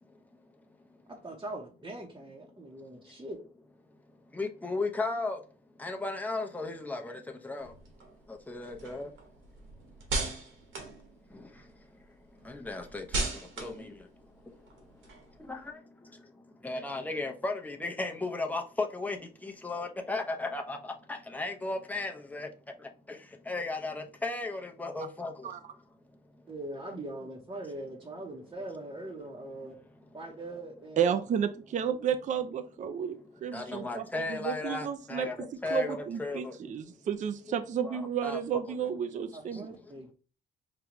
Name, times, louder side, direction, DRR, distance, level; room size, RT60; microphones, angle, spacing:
voice 1, 1.1-3.4 26.5-29.8 30.1-31.2 39.3-40.1, right 1 dB, 20° right, 0.8 m, -41 dB
voice 2, 4.3-5.4 5.8-7.7 8.5-9.1 12.4-13.2 13.6-13.9 15.5-15.6 16.6-19.2 19.4-22.5 23.1-23.2 23.5-25.5 33.5-36.6 37.8-38.8, left 3 dB, 10° left, 0.7 m, -35 dB
sound 1, 7.6-11.8 12.1-15.6, right 3 dB, 80° right, 1.3 m, -38 dB
voice 3, 31.0-39.7, right 8 dB, 40° right, 0.4 m, -32 dB
5.0 x 2.3 x 3.0 m
cardioid pair, 90°, 20 cm